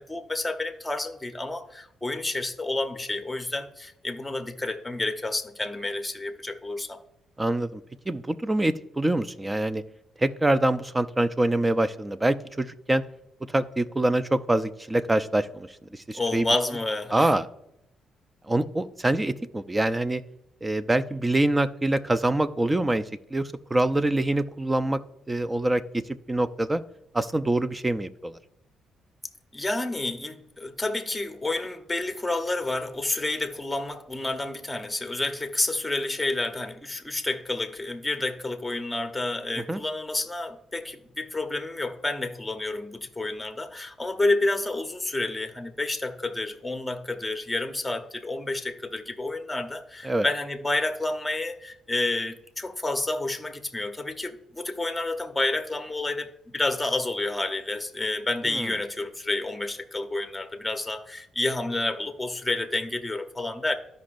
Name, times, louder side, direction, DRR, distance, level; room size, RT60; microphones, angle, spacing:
voice 1, 0.0-7.0 16.1-17.3 29.5-63.7, left 2 dB, 10° left, 6 dB, 0.8 m, -29 dB
voice 2, 7.4-9.8 10.2-13.0 13.5-15.7 15.9-16.5 17.1-17.4 18.5-20.2 20.6-23.0 23.3-25.0 25.3-26.8 27.1-28.4 39.7-39.8 50.0-50.3 58.5-58.7, right 1 dB, 15° right, 13 dB, 0.5 m, -25 dB
13.0 x 5.2 x 2.5 m, 0.79 s
cardioid pair, 90°, 0 cm